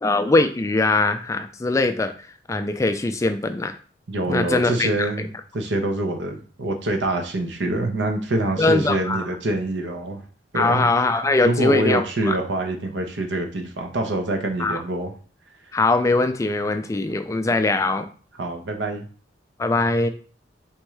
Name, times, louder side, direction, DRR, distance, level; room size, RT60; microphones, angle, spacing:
voice 1, 0.0-2.1 2.5-3.8 4.3-5.1 8.6-9.3 10.5-12.4 14.6-14.8 15.7-18.1 19.6-20.1, left 2 dB, 15° left, 8 dB, 0.3 m, -21 dB
voice 2, 4.1-10.2 10.5-10.9 11.4-15.1 18.4-19.1, right 2 dB, 75° right, 4 dB, 0.7 m, -25 dB
4.4 x 3.6 x 3.1 m, 0.40 s
head